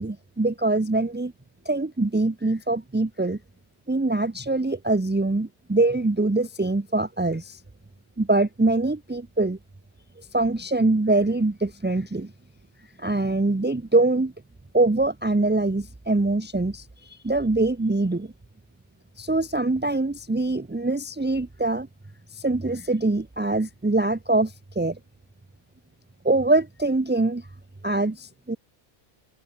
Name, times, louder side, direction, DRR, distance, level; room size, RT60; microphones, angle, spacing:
voice 1, 0.0-1.3 1.7-3.4 3.9-7.6 8.2-9.6 10.2-12.3 13.0-14.3 14.7-18.3 19.2-21.9 22.3-25.0 26.2-27.5 27.8-28.6, right 2 dB, 15° right, 0.4 m, -23 dB
open air
omnidirectional pair, 1.2 m